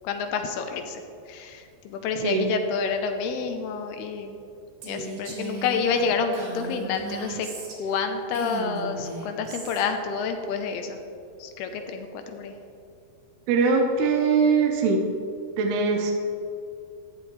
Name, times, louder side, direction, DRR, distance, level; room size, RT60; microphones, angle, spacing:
voice 1, 0.0-4.4 4.8-7.5 7.7-11.0 11.4-12.5, left 5 dB, 85° left, 6 dB, 2.7 m, -29 dB
Female speech woman speaking, 4.8-8.0 8.3-9.9, right 4 dB, 65° right, 3.3 m, -37 dB
voice 2, 13.5-15.0 15.6-16.1, right 4 dB, 80° right, 2 dB, 2.9 m, -21 dB
14.0 x 9.9 x 3.2 m, 2.5 s
omnidirectional pair, 4.6 m